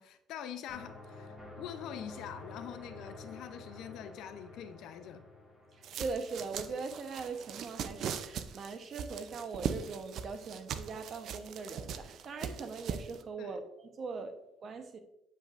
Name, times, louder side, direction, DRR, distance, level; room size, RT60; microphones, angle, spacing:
voice 1, 0.0-5.2 13.4-13.6, left 9 dB, 70° left, 0.6 m, -45 dB
sound 1, 0.7-7.4, left 2 dB, 20° right, 2.4 m, -50 dB
voice 2, 5.7-14.3 14.6-15.0, right 4 dB, 45° right, 0.9 m, -41 dB
sound 2, 5.8-13.2, right 7 dB, 65° right, 0.5 m, -40 dB
8.8 x 5.6 x 2.5 m
supercardioid pair, 90°, 0 cm